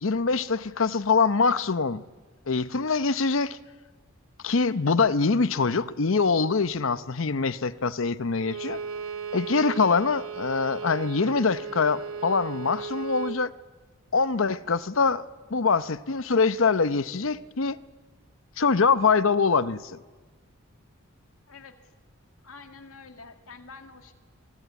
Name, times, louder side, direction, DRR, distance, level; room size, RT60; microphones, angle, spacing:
voice 1, 0.0-2.0 2.5-3.6 4.4-8.8 9.3-13.5 14.1-15.2 15.5-17.8 18.6-20.0, left 4 dB, 70° left, 0.8 m, -24 dB
Bowed string instrument, 8.4-13.4, right 6 dB, 80° right, 0.9 m, -36 dB
voice 2, 21.5-21.9 22.4-24.1, left 4 dB, 85° left, 2.2 m, -47 dB
25.5 x 23.0 x 8.2 m
head